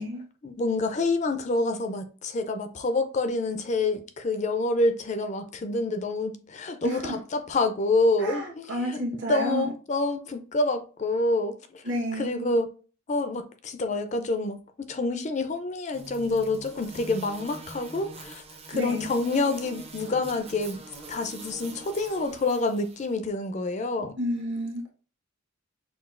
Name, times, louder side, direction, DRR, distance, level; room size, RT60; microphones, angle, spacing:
voice 1, 0.4-11.8 12.1-12.7 13.1-20.8 21.1-24.1, left 2 dB, 35° left, 0.4 m, -27 dB
voice 2, 6.8-7.1 8.2-9.7 11.8-12.4 18.7-19.1 24.2-24.9, equal, 55° right, 1.2 m, -30 dB
sound 1, 15.9-23.1, right 3 dB, 30° right, 0.6 m, -44 dB
5.8 x 2.3 x 2.4 m
head